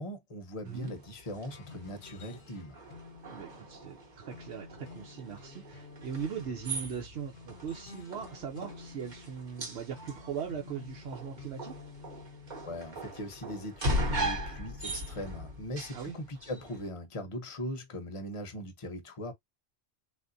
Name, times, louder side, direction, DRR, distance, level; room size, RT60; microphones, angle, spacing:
voice 1, 0.0-2.8 12.6-19.3, left 1 dB, 35° left, 0.8 m, -40 dB
sound 1, 0.7-16.9, equal, 45° right, 1.0 m, -39 dB
sound 2, 1.5-12.8, left 5 dB, 70° left, 1.1 m, -51 dB
voice 2, 3.3-11.8 15.9-16.2, right 7 dB, 80° right, 0.9 m, -40 dB
3.5 x 2.5 x 2.5 m
omnidirectional pair, 1.1 m